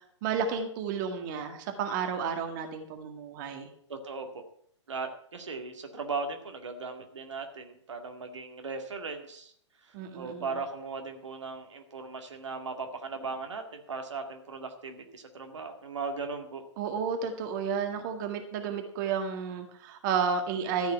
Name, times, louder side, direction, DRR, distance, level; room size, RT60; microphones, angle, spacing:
voice 1, 0.2-3.7 9.9-10.6 16.8-20.9, right 6 dB, 40° right, 5 dB, 2.0 m, -32 dB
voice 2, 3.9-4.4 4.9-9.5 9.8-16.6, right 4 dB, 75° right, 4 dB, 2.1 m, -38 dB
14.0 x 5.6 x 9.0 m, 0.66 s
figure-of-eight pair, 120°, 16 cm